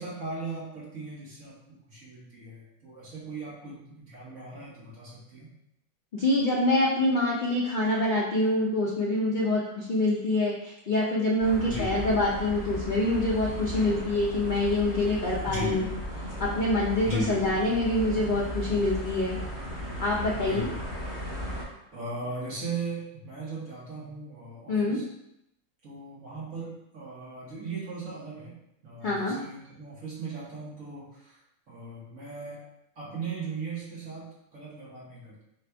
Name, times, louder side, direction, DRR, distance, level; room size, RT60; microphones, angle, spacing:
voice 1, 0.0-5.5 11.6-11.9 15.5-15.8 17.0-17.3 20.4-20.8 21.9-25.1 25.8-28.5 28.8-31.4 31.7-32.6 33.0-35.4, right 2 dB, 60° right, -7 dB, 1.8 m, -38 dB
voice 2, 6.1-15.9 16.4-19.4 20.0-20.7 24.7-25.0 29.0-29.4, left 1 dB, 65° left, -3 dB, 0.4 m, -26 dB
sound 1, 11.4-21.6, equal, 30° right, 1.3 m, -36 dB
4.1 x 2.5 x 4.5 m, 0.83 s
omnidirectional pair, 1.6 m